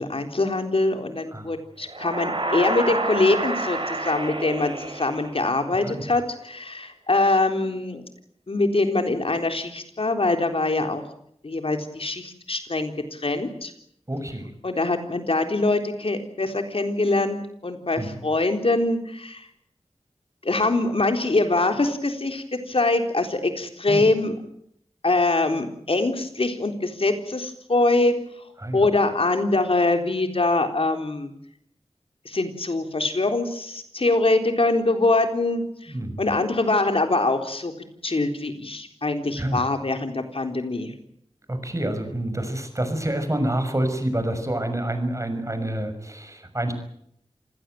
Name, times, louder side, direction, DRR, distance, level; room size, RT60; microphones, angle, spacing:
voice 1, 0.0-8.0 8.5-11.0 11.4-13.7 14.6-19.5 20.4-24.4 25.0-28.1 28.7-31.3 32.3-37.7 38.0-40.9, left 2 dB, 65° left, 6 dB, 3.8 m, -23 dB
sound 1, 1.9-5.7, right 2 dB, 55° right, 7.1 m, -29 dB
voice 2, 14.1-14.5 18.0-18.2 23.9-24.1 28.6-28.9 35.9-36.2 39.4-39.6 41.5-46.7, right 1 dB, 30° right, 8 dB, 6.3 m, -27 dB
27.5 x 17.0 x 9.3 m, 0.71 s
wide cardioid pair, 60°, 11 cm